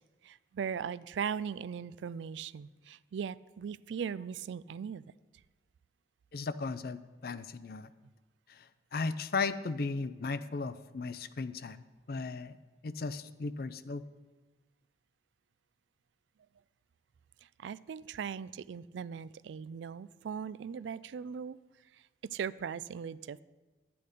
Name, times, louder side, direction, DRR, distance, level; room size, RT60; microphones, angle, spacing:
voice 1, 0.2-5.0 17.6-21.6 22.3-23.4, right 7 dB, 85° right, 18 dB, 0.3 m, -39 dB
voice 2, 6.3-7.9 8.5-8.7 8.9-12.6 12.8-14.0, left 4 dB, 55° left, 14 dB, 0.5 m, -36 dB
11.5 x 8.5 x 5.1 m, 1.3 s
head